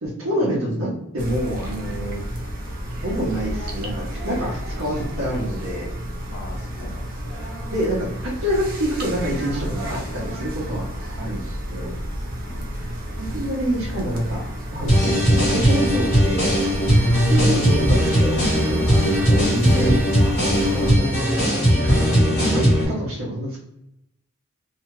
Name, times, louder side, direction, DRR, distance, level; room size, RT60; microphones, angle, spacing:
voice 1, 0.0-2.2 3.0-5.9 7.7-10.9 11.2-11.4 11.7-11.9 13.2-14.4 14.7-16.5 17.3-20.1 20.7-23.6, equal, 75° right, -6 dB, 0.8 m, -27 dB
sound 1, 1.2-21.0, equal, 45° right, 0.7 m, -31 dB
voice 2, 6.3-7.6 9.8-10.4 12.5-12.7 18.8-19.5, left 2 dB, 55° left, 0 dB, 0.7 m, -39 dB
sound 2, 14.9-22.8, equal, 35° left, 1.4 m, -18 dB
2.7 x 2.3 x 3.1 m, 0.84 s
head